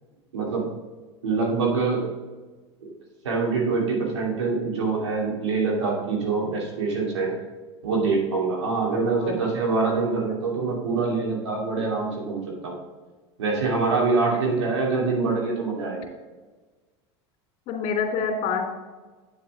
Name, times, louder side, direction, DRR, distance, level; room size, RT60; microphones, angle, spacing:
voice 1, 0.3-0.7 1.2-2.1 2.8-2.9 3.2-7.3 7.8-12.7 13.4-16.1, right 4 dB, 90° right, -2 dB, 2.9 m, -25 dB
voice 2, 17.7-18.8, left 5 dB, 50° left, 0 dB, 2.6 m, -26 dB
9.2 x 7.6 x 3.6 m, 1.3 s
hypercardioid pair, 95°, 14 cm